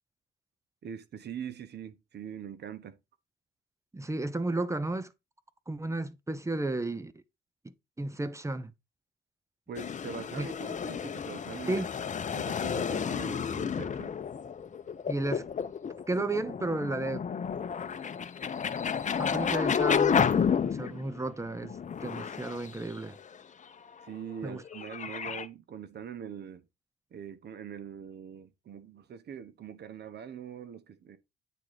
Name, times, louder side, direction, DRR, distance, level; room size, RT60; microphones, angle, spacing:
voice 1, 0.8-3.0 9.7-11.8 12.3-14.2 24.0-26.6 27.1-31.2, right 8 dB, 55° right, 1.2 m, -43 dB
voice 2, 3.9-5.1 5.7-7.2 7.6-8.7 10.3-10.5 11.7-11.9 15.1-15.4 16.1-17.3 19.2-23.2 24.4-24.6, right 2 dB, 15° right, 0.9 m, -33 dB
sound 1, 9.7-21.2 21.6-23.3 24.3-25.4, left 7 dB, 40° left, 0.8 m, -31 dB
9.2 x 3.8 x 4.9 m
cardioid pair, 90°, 20 cm